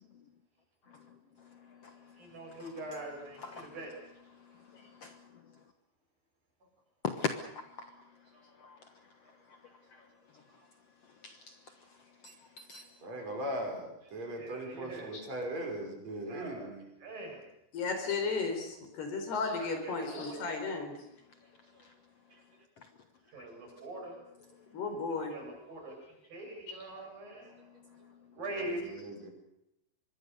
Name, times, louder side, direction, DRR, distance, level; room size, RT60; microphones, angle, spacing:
voice 1, 1.4-2.7 3.4-3.7 4.3-5.4 7.0-7.9 8.6-8.9 9.5-9.6 9.9-10.0 10.3-10.4 11.2-11.6 12.2-12.9 21.8-21.9 22.8-22.9 23.4-23.5 27.5-28.2, left 5 dB, 85° left, 7 dB, 1.3 m, -42 dB
voice 2, 2.2-3.9 14.4-15.2 16.3-16.8 17.0-17.5 19.6-20.4 23.3-24.2 25.1-26.0 26.3-27.6 28.3-29.0, right 1 dB, 55° right, 1 dB, 8.7 m, -43 dB
voice 3, 13.0-16.8 22.3-22.4 28.5-29.3, right 1 dB, 40° right, 2 dB, 6.7 m, -39 dB
voice 4, 17.7-21.0 24.7-25.3 26.7-26.8, left 4 dB, 65° left, 6 dB, 6.1 m, -34 dB
25.0 x 22.0 x 6.8 m, 0.84 s
omnidirectional pair, 5.0 m